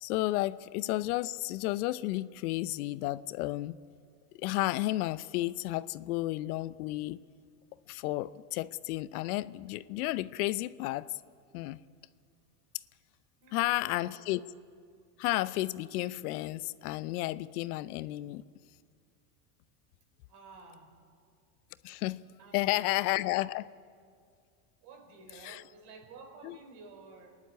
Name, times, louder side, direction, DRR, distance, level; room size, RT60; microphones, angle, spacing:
voice 1, 0.0-3.8 4.4-7.2 7.9-11.1 11.5-11.8 13.5-14.4 15.2-18.4 21.8-22.2 22.5-23.7 25.4-25.6 26.4-26.6, left 18 dB, 70° left, 16 dB, 0.8 m, -32 dB
voice 2, 13.4-14.2 20.3-21.0 22.4-23.0 24.8-27.4, right 3 dB, 60° right, 4 dB, 4.9 m, -52 dB
28.0 x 11.0 x 8.5 m, 2.2 s
hypercardioid pair, 90°, 46 cm